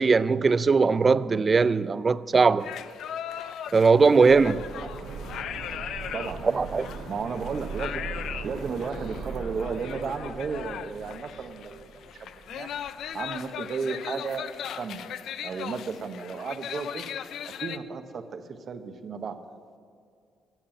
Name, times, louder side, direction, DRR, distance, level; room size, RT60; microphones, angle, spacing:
voice 1, 0.0-2.7 3.7-4.6 6.5-6.9, right 4 dB, 35° right, 0.4 m, -20 dB
sound 1, 2.6-17.8, left 9 dB, 75° left, 0.5 m, -38 dB
sound 2, 4.3-13.0 13.3-13.4, right 4 dB, 75° right, 1.8 m, -40 dB
voice 2, 6.1-6.8 7.1-8.0 8.4-12.7 13.1-14.5 14.8-15.1 15.4-17.0 17.4-18.4 18.7-19.4, right 5 dB, 55° right, 1.1 m, -34 dB
15.0 x 7.4 x 8.9 m
cardioid pair, 90°, 0 cm